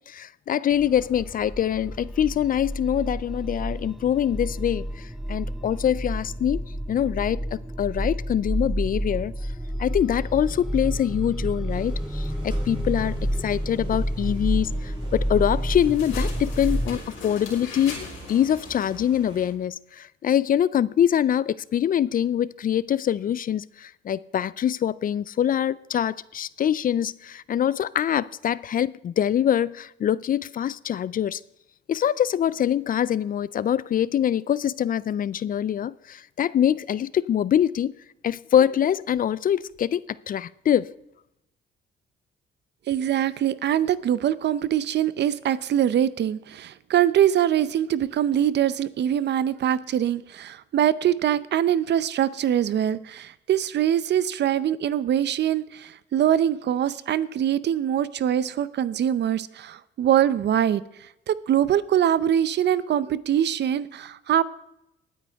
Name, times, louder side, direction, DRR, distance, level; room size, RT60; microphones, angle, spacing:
voice 1, 0.1-6.6 6.9-9.3 9.8-31.4 31.9-37.9 38.2-40.0 40.3-40.9, left 10 dB, 45° left, 0.4 m, -24 dB
sound 1, 0.7-17.0, equal, ahead, 0.6 m, -30 dB
sound 2, 11.7-19.5, right 1 dB, 25° right, 4.7 m, -46 dB
sound 3, 15.5-19.0, left 4 dB, 85° left, 3.9 m, -40 dB
voice 2, 42.9-64.4, right 10 dB, 60° right, 0.6 m, -23 dB
19.0 x 9.4 x 3.5 m
cardioid pair, 90°, 20 cm